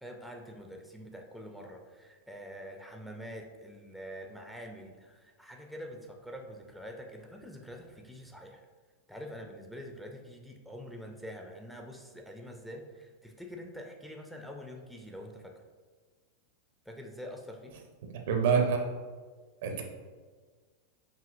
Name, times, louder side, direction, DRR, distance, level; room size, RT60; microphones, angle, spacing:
voice 1, 0.0-8.6 9.1-15.6 16.9-17.7, equal, ahead, 2 dB, 0.4 m, -45 dB
voice 2, 18.1-18.9 19.6-19.8, right 6 dB, 55° right, 4 dB, 0.5 m, -26 dB
4.8 x 2.7 x 2.5 m, 1.4 s
figure-of-eight pair, 90°, 0 cm